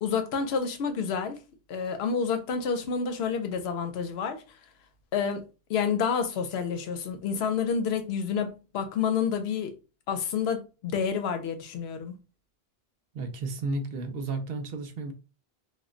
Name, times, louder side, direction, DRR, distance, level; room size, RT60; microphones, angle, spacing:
voice 1, 0.0-1.4 1.7-4.4 5.1-5.4 5.7-9.7 10.1-12.2, left 6 dB, 85° left, 0.8 m, -29 dB
voice 2, 13.1-15.1, right 3 dB, 70° right, 0.8 m, -33 dB
2.2 x 2.1 x 3.7 m
omnidirectional pair, 1.0 m